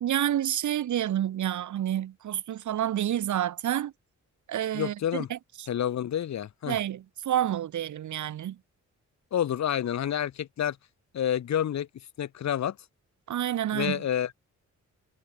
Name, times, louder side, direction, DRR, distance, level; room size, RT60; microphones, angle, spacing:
voice 1, 0.0-3.9 4.5-5.7 6.7-8.6 13.3-14.0, right 11 dB, 75° right, 0.9 m, -29 dB
voice 2, 4.7-5.3 5.7-6.8 9.3-10.8 11.1-11.9 12.2-12.8 13.7-14.4, left 10 dB, 65° left, 1.0 m, -28 dB
wide cardioid pair, 155°, 30 cm